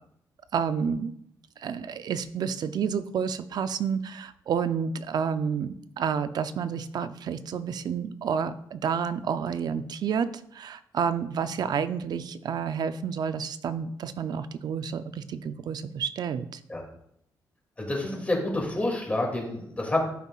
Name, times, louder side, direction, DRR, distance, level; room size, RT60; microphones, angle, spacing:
voice 1, 0.5-1.1 1.6-16.6, right 7 dB, 65° right, 12 dB, 0.5 m, -30 dB
voice 2, 17.8-20.0, left 1 dB, 20° left, -1 dB, 2.5 m, -28 dB
13.5 x 5.4 x 2.4 m, 0.72 s
cardioid pair, 95°, 7 cm